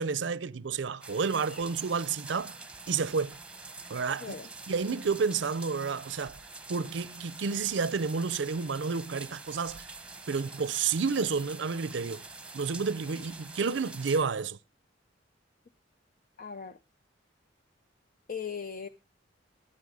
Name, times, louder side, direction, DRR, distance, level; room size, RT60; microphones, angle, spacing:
voice 1, 0.0-2.5 2.9-3.4 3.9-4.4 4.7-6.4 6.7-9.9 10.3-12.2 12.5-14.6, right 5 dB, 70° right, 0.6 m, -30 dB
sound 1, 1.0-14.2, right 3 dB, 5° right, 1.0 m, -46 dB
voice 2, 4.2-4.5 16.4-16.8 18.3-18.9, left 6 dB, 50° left, 0.6 m, -38 dB
13.5 x 8.9 x 4.9 m
head